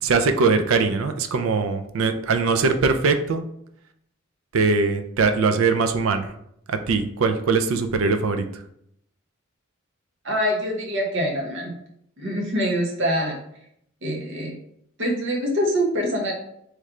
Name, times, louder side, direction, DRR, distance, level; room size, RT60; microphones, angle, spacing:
voice 1, 0.0-3.4 4.5-6.3 6.7-8.4, right 4 dB, 85° right, 8 dB, 0.4 m, -21 dB
voice 2, 10.2-11.7 12.2-13.4 14.0-14.5 15.0-16.3, equal, 65° right, 0 dB, 1.1 m, -24 dB
3.2 x 3.2 x 3.6 m, 0.73 s
head